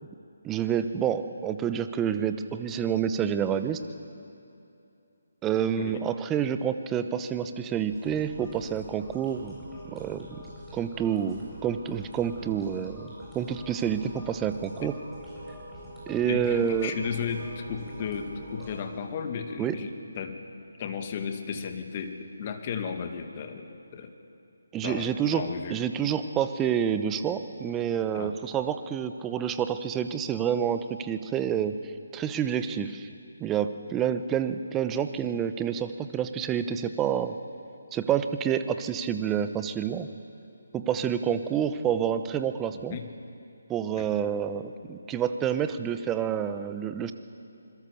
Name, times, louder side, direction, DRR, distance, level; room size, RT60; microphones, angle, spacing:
voice 1, 0.4-3.8 5.4-9.6 9.9-10.3 10.7-14.9 16.1-16.9 19.6-19.7 24.7-25.4 25.7-31.8 32.1-33.1 33.4-37.3 37.9-40.1 40.7-43.0 43.7-47.1, right 8 dB, 15° right, 10 dB, 0.9 m, -28 dB
sound 1, 7.9-18.8, equal, 5° left, 7.6 m, -45 dB
voice 2, 16.3-20.4 20.8-24.1 24.8-25.8 28.1-28.4 42.9-43.0 44.0-44.1, left 6 dB, 35° left, 5 dB, 2.1 m, -34 dB
26.5 x 22.0 x 7.1 m, 2.7 s
figure-of-eight pair, 150°, 0 cm